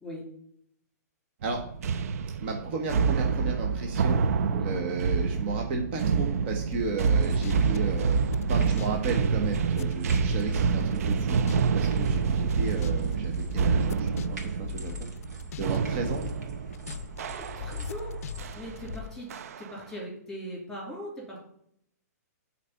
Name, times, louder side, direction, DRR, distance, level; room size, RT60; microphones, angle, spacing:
sound 1, 1.4-18.0 18.4-18.7 19.3-19.8, right 5 dB, 60° right, 0.5 m, -27 dB
voice 1, 2.4-4.2 4.6-8.2 8.5-11.4 11.7-15.1 15.6-16.2, right 4 dB, 40° right, 3 dB, 1.0 m, -34 dB
sound 2, 6.7-9.0 9.2-11.8 12.1-15.8 16.0-17.2 17.6-19.1, left 10 dB, 60° left, 0.5 m, -39 dB
sound 3, 7.1-19.0, right 1 dB, 85° right, 2.2 m, -44 dB
voice 2, 17.2-18.2 18.5-21.4, equal, 5° left, -3 dB, 2.9 m, -40 dB
8.3 x 4.1 x 5.6 m, 0.69 s
hypercardioid pair, 160°, 9 cm